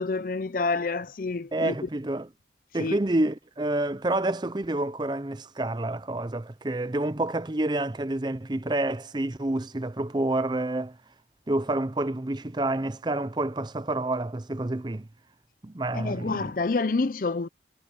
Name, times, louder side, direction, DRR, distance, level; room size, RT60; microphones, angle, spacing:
voice 1, 0.0-1.8 2.8-3.0 15.9-17.5, left 3 dB, 50° left, 0.6 m, -28 dB
voice 2, 1.5-2.3 2.7-11.0 11.5-15.1 15.6-16.5, right 2 dB, 25° right, 0.6 m, -28 dB
head